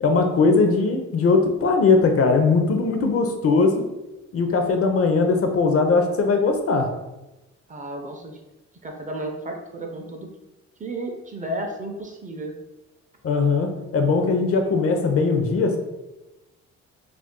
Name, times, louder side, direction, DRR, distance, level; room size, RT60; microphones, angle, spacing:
voice 1, 0.0-3.8 4.3-6.9 13.2-15.8, left 4 dB, 50° left, 5 dB, 0.5 m, -20 dB
voice 2, 7.7-8.4 8.8-10.3 10.8-12.5, right 1 dB, 25° right, 3 dB, 0.4 m, -33 dB
2.5 x 2.3 x 3.6 m, 1.0 s
cardioid pair, 90°, 30 cm